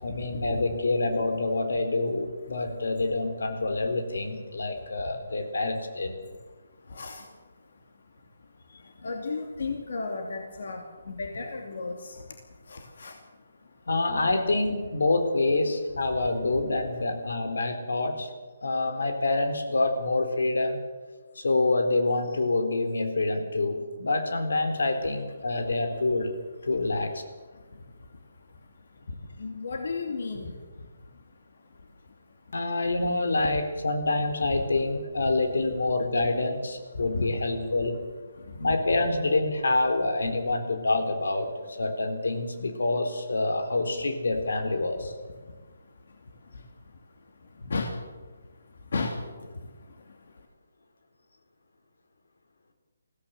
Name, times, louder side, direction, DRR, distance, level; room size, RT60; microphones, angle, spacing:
voice 1, 0.0-6.2 13.9-18.3 18.6-20.8 21.4-26.3 26.7-27.1 32.5-38.0 38.6-41.5 41.8-45.1, left 2 dB, 85° left, 7 dB, 4.1 m, -27 dB
voice 2, 9.0-10.8 11.1-12.0 12.7-13.1 29.4-30.4 34.5-34.6 37.1-37.2 47.7-47.9 48.9-49.1, left 3 dB, 55° left, 3 dB, 2.7 m, -32 dB
21.5 x 16.5 x 7.8 m, 1.3 s
hypercardioid pair, 180°, 0 cm